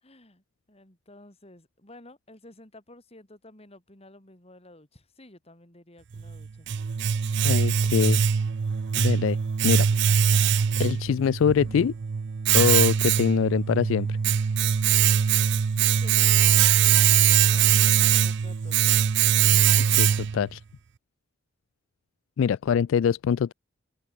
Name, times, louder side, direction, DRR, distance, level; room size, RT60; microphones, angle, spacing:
voice 1, 0.0-6.7 7.7-8.1 16.0-16.7 17.0-19.1, left 1 dB, 30° left, 4.1 m, -52 dB
Domestic sounds home sounds, 6.1-20.5, right 8 dB, 60° right, 0.4 m, -22 dB
voice 2, 7.4-8.2 9.0-9.4 9.6-9.9 10.8-11.9 12.5-14.2 19.9-20.6 22.4-23.5, left 7 dB, 75° left, 0.3 m, -24 dB
head